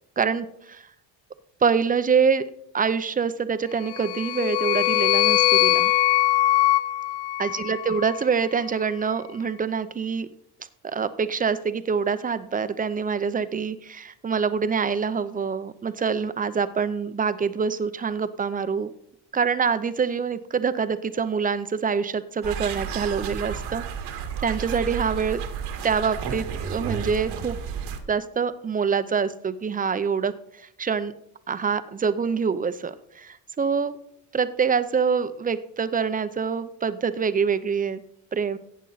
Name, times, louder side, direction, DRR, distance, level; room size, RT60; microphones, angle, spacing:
voice 1, 0.2-0.8 1.6-2.4 2.7-5.9 7.4-10.3 10.8-18.9 19.3-23.8 24.4-25.4 25.8-27.6 28.1-30.3 30.8-31.1 31.5-34.0 34.3-38.0 38.3-38.6, right 6 dB, 20° right, 13 dB, 0.6 m, -25 dB
sound 1, 3.8-8.2, left 15 dB, 85° left, 0.6 m, -22 dB
sound 2, 22.4-28.0, right 7 dB, 80° right, 1.9 m, -32 dB
15.0 x 8.2 x 4.0 m, 0.72 s
cardioid pair, 135°, 40 cm